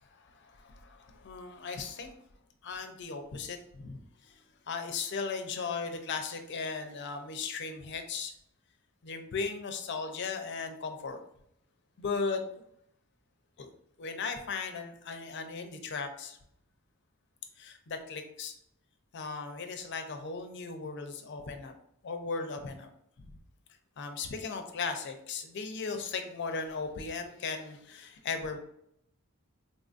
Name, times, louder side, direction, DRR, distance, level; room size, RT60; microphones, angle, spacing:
voice 1, 0.0-2.1 2.6-4.4 4.7-8.3 9.0-11.2 12.0-12.4 13.6-13.7 14.0-16.4 17.6-18.5 19.1-21.7 22.0-22.9 23.2-23.3 24.0-28.6, left 4 dB, 50° left, 6 dB, 0.4 m, -37 dB
3.7 x 2.5 x 2.4 m, 0.72 s
head